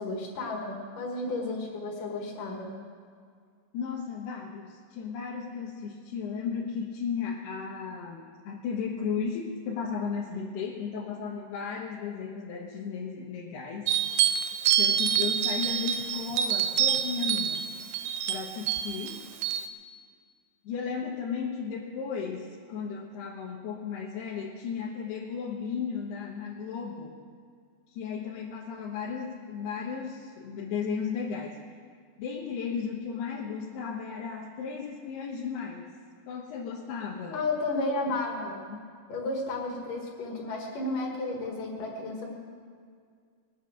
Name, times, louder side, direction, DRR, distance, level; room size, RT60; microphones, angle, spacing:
voice 1, 0.0-2.7 37.3-38.6 39.1-42.3, left 2 dB, 60° left, 0 dB, 3.3 m, -32 dB
voice 2, 3.7-14.0 14.8-17.7 18.3-19.2 20.6-27.2 27.9-31.6 32.2-35.9 36.3-37.4 38.7-38.9, left 6 dB, 85° left, -4 dB, 3.3 m, -35 dB
sound 1, 13.9-19.7, right 9 dB, 85° right, 1.8 m, -27 dB
21.5 x 9.1 x 6.4 m, 2.1 s
omnidirectional pair, 4.5 m